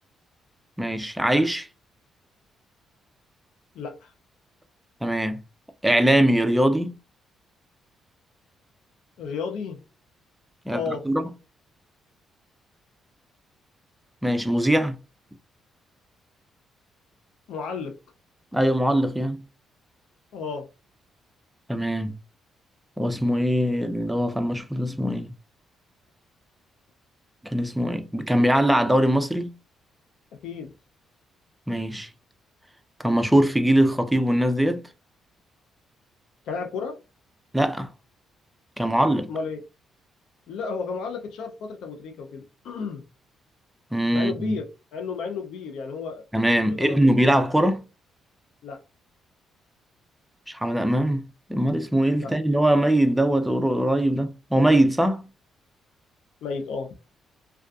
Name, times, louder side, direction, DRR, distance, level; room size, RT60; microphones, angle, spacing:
voice 1, 0.8-1.7 5.0-5.4 5.8-7.0 10.7-11.3 14.2-15.0 18.5-19.4 21.7-22.1 23.0-25.3 27.4-29.5 31.7-32.1 33.0-34.8 37.5-37.9 38.8-39.3 43.9-44.6 46.3-47.8 50.5-55.2, right 1 dB, 5° right, 0.4 m, -22 dB
voice 2, 3.7-4.1 9.2-9.8 10.7-11.0 17.5-18.0 20.3-20.7 30.4-30.7 36.5-37.0 39.3-39.6 40.5-43.0 44.1-44.6 44.9-46.2 46.7-47.2 48.6-48.8 52.2-52.3 56.4-57.0, left 5 dB, 80° left, 0.4 m, -33 dB
2.5 x 2.2 x 2.3 m
cardioid pair, 90°, 0 cm